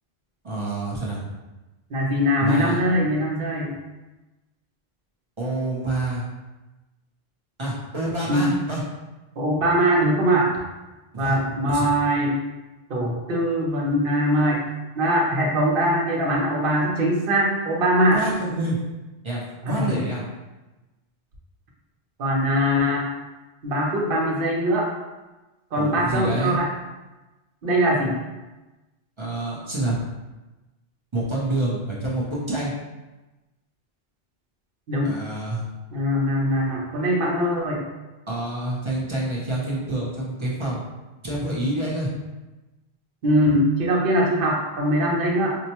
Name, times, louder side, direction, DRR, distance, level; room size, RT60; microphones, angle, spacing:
voice 1, 0.4-1.2 2.4-2.8 5.4-6.2 7.6-8.8 11.1-11.3 11.7-11.9 18.1-18.8 19.2-20.2 25.8-26.6 29.2-30.0 31.1-32.7 35.0-35.6 38.3-40.8 41.2-42.1, right 2 dB, 30° right, -6 dB, 0.7 m, -27 dB
voice 2, 1.9-3.7 8.3-8.5 9.4-10.5 11.2-12.4 12.9-14.6 14.9-18.2 19.6-20.0 22.2-23.1 23.6-24.9 25.7-26.7 27.6-28.2 34.9-35.1 35.9-37.8 43.2-45.5, equal, 60° right, -3 dB, 0.9 m, -22 dB
4.4 x 2.1 x 2.8 m, 1.1 s
omnidirectional pair, 1.1 m